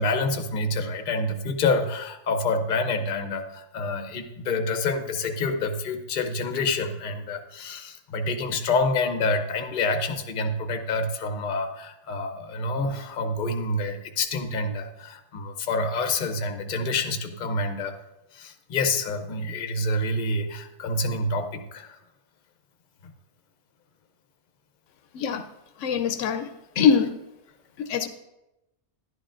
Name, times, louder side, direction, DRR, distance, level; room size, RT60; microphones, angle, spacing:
voice 1, 0.0-18.0 18.3-22.0, left 2 dB, 45° left, 7 dB, 0.8 m, -27 dB
voice 2, 25.1-25.5 25.8-27.1 27.8-28.1, left 7 dB, 85° left, 9 dB, 0.9 m, -23 dB
11.5 x 11.0 x 2.5 m, 0.93 s
omnidirectional pair, 1.3 m